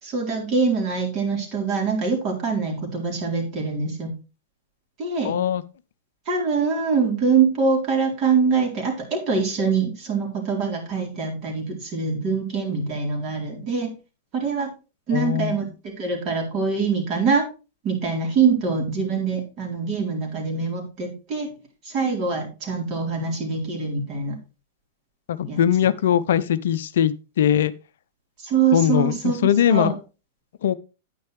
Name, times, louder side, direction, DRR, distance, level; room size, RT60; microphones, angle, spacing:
voice 1, 0.0-4.1 5.0-5.4 6.3-13.9 14.3-14.7 15.1-17.4 17.8-21.5 21.9-24.4 25.5-25.6 28.4-29.9, right 5 dB, 40° right, 3.8 m, -24 dB
voice 2, 5.2-5.6 15.1-15.6 25.3-27.7 28.7-29.9 30.6-30.7, left 10 dB, 60° left, 0.5 m, -21 dB
9.4 x 9.4 x 3.2 m
figure-of-eight pair, 95°, 0 cm